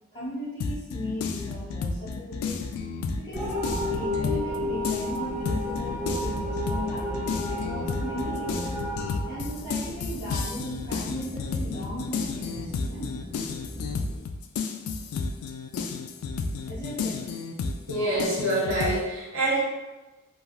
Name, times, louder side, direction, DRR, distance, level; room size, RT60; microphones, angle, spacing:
voice 1, 0.1-2.6 3.1-3.5 3.9-8.7 9.3-13.2 16.6-17.3, equal, 20° left, -8 dB, 1.1 m, -37 dB
sound 1, 0.6-4.6 4.8-19.0, left 4 dB, 80° left, 0.3 m, -32 dB
sound 2, 3.3-14.2, equal, 40° left, 0.7 m, -39 dB
sound 3, 3.3-10.2, left 1 dB, 10° right, 0.5 m, -32 dB
voice 2, 17.9-19.6, right 1 dB, 70° right, -5 dB, 1.0 m, -26 dB
3.2 x 2.3 x 2.4 m, 1.1 s
head